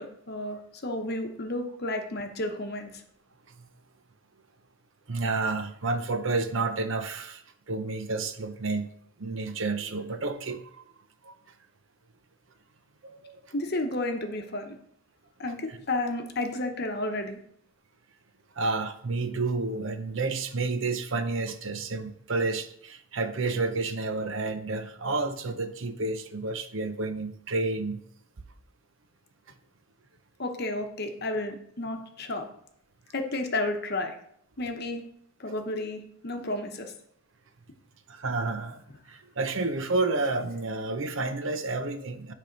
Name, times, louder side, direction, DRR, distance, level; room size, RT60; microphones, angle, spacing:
voice 1, 0.0-2.9 13.5-14.8 15.4-17.4 30.4-32.5 33.1-34.1 34.6-35.0 35.4-36.9, left 2 dB, 45° left, 5 dB, 0.9 m, -32 dB
voice 2, 5.1-8.9 9.2-10.8 11.2-11.3 13.0-13.5 15.7-15.8 18.6-28.0 38.1-42.3, right 3 dB, 60° right, 9 dB, 0.7 m, -30 dB
10.0 x 3.5 x 5.2 m, 0.70 s
head